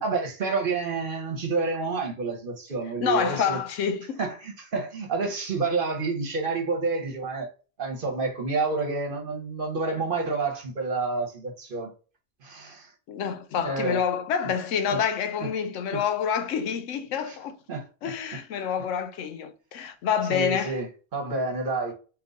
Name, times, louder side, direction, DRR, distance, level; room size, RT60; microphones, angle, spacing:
voice 1, 0.0-3.6 4.2-7.5 7.8-11.9 12.4-12.9 13.6-14.0 14.9-15.0 17.3-17.4 17.7-18.1 20.3-20.9 21.1-21.9, right 4 dB, 50° right, 1.0 m, -29 dB
voice 2, 3.0-4.2 13.1-17.6 18.0-20.8, left 7 dB, 90° left, 1.0 m, -27 dB
3.8 x 2.5 x 3.8 m
omnidirectional pair, 1.3 m